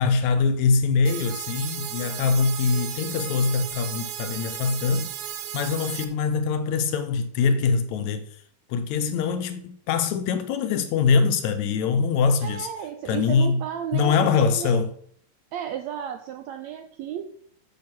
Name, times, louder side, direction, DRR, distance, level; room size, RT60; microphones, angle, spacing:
voice 1, 0.0-5.1 5.5-8.3 8.7-12.7 13.1-13.6 13.9-14.9, left 5 dB, 75° left, 1.7 m, -23 dB
sound 1, 1.0-6.0, right 10 dB, 70° right, 1.6 m, -34 dB
voice 2, 12.4-14.8 15.5-17.3, right 9 dB, 85° right, 1.5 m, -33 dB
9.5 x 7.1 x 5.9 m
omnidirectional pair, 3.9 m